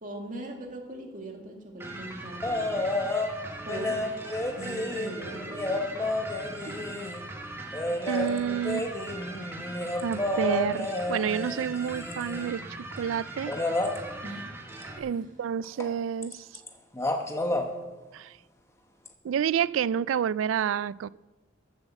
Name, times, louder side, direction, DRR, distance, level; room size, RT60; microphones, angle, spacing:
voice 1, 0.0-2.9 3.6-4.0 4.6-6.2 6.5-7.0 14.2-14.5 15.1-15.4, right 1 dB, 40° right, 2.1 m, -41 dB
sound 1, 1.8-15.0, right 2 dB, 10° right, 1.3 m, -41 dB
sound 2, 2.4-3.3 3.7-7.2 7.7-12.6 13.5-14.0 15.8-15.9 16.2-16.7 16.9-17.7 19.1-19.2, left 1 dB, 15° left, 1.0 m, -30 dB
voice 2, 8.1-8.9 10.0-12.6 13.0-13.6 15.0-16.5 18.1-18.4 19.2-21.1, right 8 dB, 90° right, 0.3 m, -29 dB
14.0 x 7.8 x 7.0 m
head